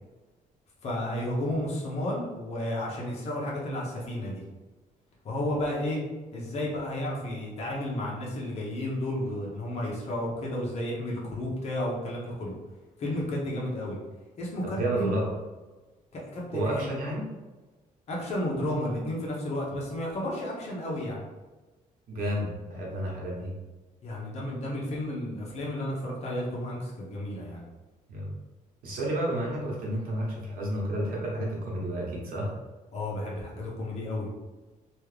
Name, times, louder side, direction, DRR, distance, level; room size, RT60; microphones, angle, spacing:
voice 1, 0.8-4.4 5.2-6.0 6.3-12.5 13.0-14.0 14.4-15.2 16.1-16.8 18.1-21.3 24.0-27.6 32.9-34.3, left 1 dB, 50° left, -3 dB, 1.0 m, -32 dB
voice 2, 14.6-15.3 16.5-17.3 22.1-23.5 28.1-28.3 28.8-32.5, right 1 dB, 90° right, -4 dB, 1.2 m, -31 dB
3.1 x 2.4 x 3.3 m, 1.2 s
cardioid pair, 155°, 14 cm